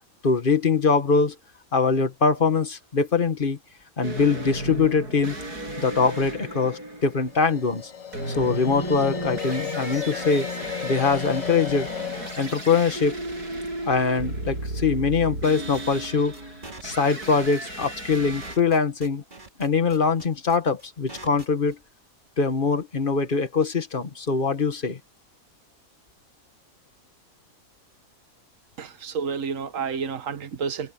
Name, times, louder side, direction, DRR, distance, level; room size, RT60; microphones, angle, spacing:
voice 1, 0.2-1.4 1.7-3.6 4.0-5.4 5.8-7.9 8.3-10.5 10.8-11.9 12.2-13.2 13.8-16.4 16.8-19.2 19.6-21.8 22.4-25.0, left 4 dB, 35° left, 1.8 m, -23 dB
sound 1, 4.0-18.6, right 1 dB, 90° right, 7.9 m, -35 dB
sound 2, 7.3-14.4, left 6 dB, 65° left, 0.3 m, -35 dB
sound 3, 15.4-21.7, right 2 dB, 30° right, 2.8 m, -44 dB
voice 2, 28.8-30.9, right 6 dB, 60° right, 1.6 m, -30 dB
omnidirectional pair, 1.6 m